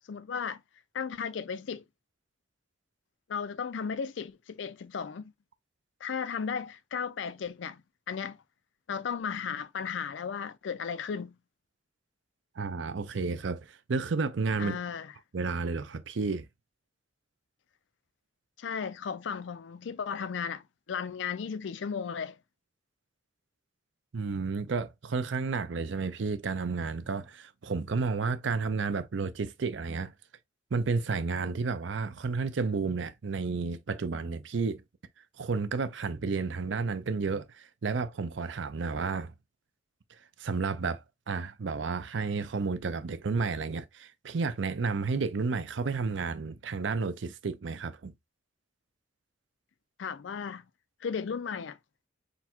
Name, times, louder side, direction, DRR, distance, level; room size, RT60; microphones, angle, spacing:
voice 1, 0.1-0.6 0.9-1.8 3.3-5.3 6.0-7.8 8.1-8.4 8.9-11.3 14.6-15.1 18.6-22.4 50.0-50.6 51.0-51.8, left 6 dB, 75° left, 0.4 m, -35 dB
voice 2, 12.6-14.8 15.3-16.5 24.1-30.1 30.7-34.8 35.4-39.3 40.4-48.1, right 4 dB, 80° right, 0.5 m, -31 dB
3.9 x 2.2 x 4.3 m
head